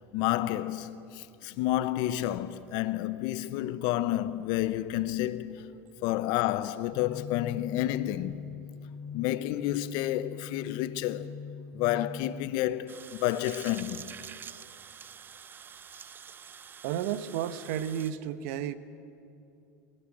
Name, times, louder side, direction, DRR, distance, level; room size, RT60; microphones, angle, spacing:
voice 1, 0.1-5.7 6.0-8.4 9.1-11.3 11.7-14.1, left 14 dB, 60° left, 0.9 m, -30 dB
sound 1, 6.9-12.5, left 6 dB, 35° left, 0.7 m, -41 dB
sound 2, 12.9-18.1, right 7 dB, 25° right, 0.5 m, -47 dB
voice 2, 16.8-18.8, right 10 dB, 75° right, 1.0 m, -32 dB
21.0 x 18.5 x 8.7 m
supercardioid pair, 120°, 8 cm